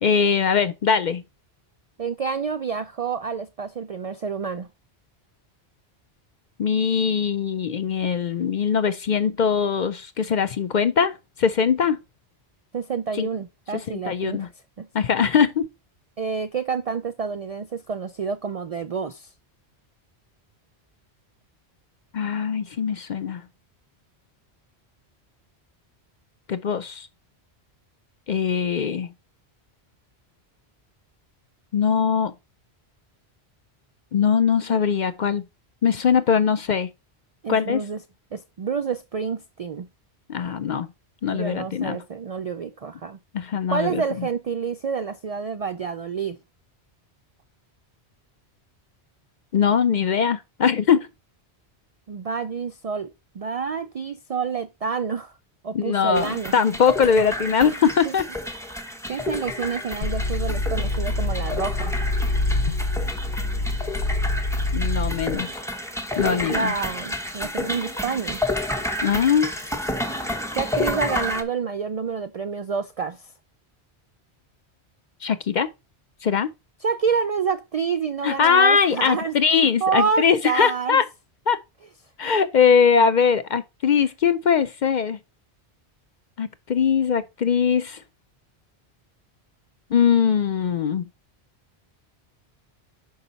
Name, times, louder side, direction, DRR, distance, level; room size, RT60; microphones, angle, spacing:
voice 1, 0.0-1.2 6.6-12.0 13.2-13.3 13.9-14.5 14.9-15.6 22.1-23.4 26.5-27.1 28.3-29.1 31.7-32.3 34.1-35.4 35.8-36.9 37.5-37.8 40.3-40.9 41.2-42.0 43.3-44.3 49.5-51.0 55.7-58.2 64.7-65.6 66.2-66.7 69.0-69.5 75.2-75.7 76.2-76.5 78.2-81.0 81.5-81.6 82.2-85.2 86.4-88.0 89.9-91.0, left 6 dB, 55° left, 0.6 m, -21 dB
voice 2, 2.0-4.7 12.7-14.5 14.8-14.9 16.2-19.3 37.4-38.0 38.3-39.9 41.3-43.2 43.7-46.4 52.1-55.4 55.6-56.5 57.6-57.7 58.0-58.1 59.1-61.9 66.2-68.4 70.6-73.3 76.8-81.0, right 5 dB, 60° right, 0.4 m, -28 dB
sound 1, 56.1-71.4, left 1 dB, 5° left, 0.8 m, -30 dB
sound 2, 60.0-65.3, left 2 dB, 75° left, 1.0 m, -25 dB
5.5 x 5.4 x 3.9 m
omnidirectional pair, 1.1 m